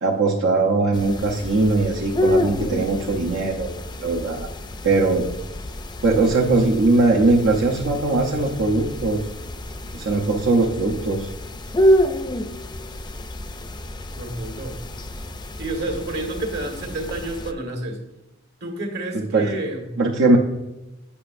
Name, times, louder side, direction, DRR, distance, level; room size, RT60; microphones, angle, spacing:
voice 1, 0.0-4.5 4.8-5.2 6.0-9.3 9.9-11.3 19.1-19.4 20.0-20.4, right 3 dB, 75° right, -3 dB, 0.8 m, -20 dB
sound 1, 0.9-17.5, equal, 20° left, 0.4 m, -28 dB
voice 2, 14.1-14.8 15.6-18.0 18.6-19.9, right 2 dB, 55° right, 3 dB, 1.5 m, -29 dB
8.5 x 5.8 x 2.5 m, 0.96 s
head